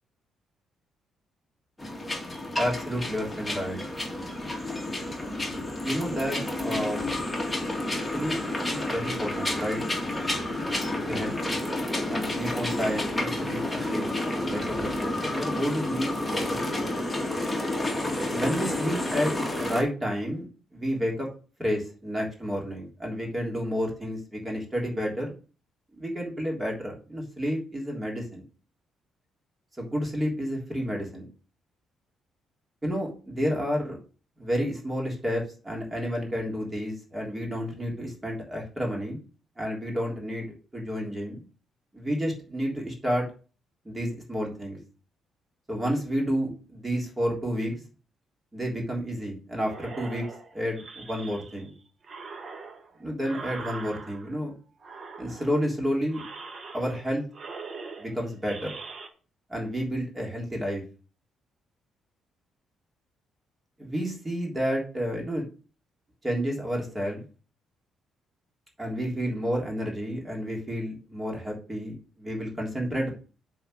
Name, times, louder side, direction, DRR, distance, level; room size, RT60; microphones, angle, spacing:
sound 1, 1.8-19.8, left 1 dB, 10° left, 2.2 m, -30 dB
voice 1, 2.6-3.8 5.8-7.1 8.1-8.4 8.7-9.8 10.9-11.5 12.1-16.9 18.3-19.3 19.6-21.3 21.6-25.3 26.0-28.4 29.8-31.3 32.8-34.0 34.4-39.2 39.6-40.5 40.7-41.4 41.9-43.3 43.9-44.8 45.7-47.7 48.5-50.3 50.5-51.7 53.0-54.5 55.2-56.2 56.7-57.3 58.0-58.7 59.5-60.8 63.8-65.4 66.2-67.2 68.8-73.2, equal, 20° right, -1 dB, 3.5 m, -30 dB
sound 2, 49.6-51.7 52.0-54.4 54.8-55.7 56.1-57.1 57.3-59.1, right 4 dB, 45° right, 1.4 m, -42 dB
7.8 x 4.4 x 6.6 m, 0.37 s
cardioid pair, 90°, 0 cm